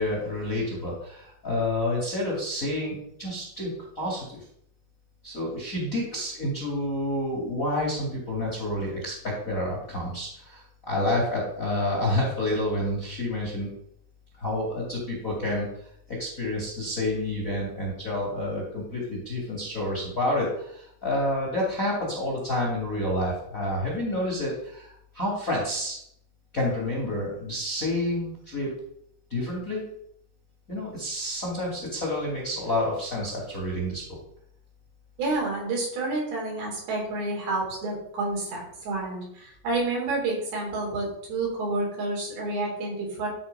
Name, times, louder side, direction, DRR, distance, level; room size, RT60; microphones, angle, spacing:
voice 1, 0.0-4.4 5.2-13.7 14.4-15.7 16.1-26.0 26.5-28.7 29.3-29.8 30.7-34.0, left 1 dB, 30° left, -2 dB, 1.9 m, -29 dB
voice 2, 35.2-43.3, right 2 dB, 80° right, -3 dB, 5.5 m, -29 dB
12.0 x 4.5 x 5.2 m, 0.72 s
omnidirectional pair, 4.4 m